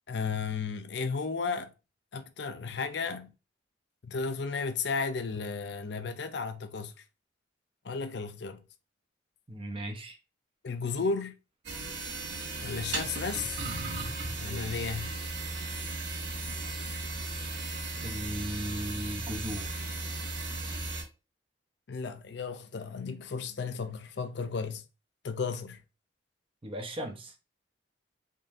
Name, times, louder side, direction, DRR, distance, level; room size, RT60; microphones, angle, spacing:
voice 1, 0.1-1.7 2.1-3.3 4.0-6.9 7.8-8.6 10.6-11.4 12.6-13.6 14.4-15.2 21.9-24.8 25.2-25.8, left 5 dB, 60° left, 0.5 m, -34 dB
voice 2, 9.5-10.2 18.0-19.7 26.6-27.3, equal, 25° right, 0.7 m, -37 dB
sound 1, 11.6-21.0, right 2 dB, 60° right, 1.3 m, -36 dB
3.7 x 3.7 x 2.5 m
head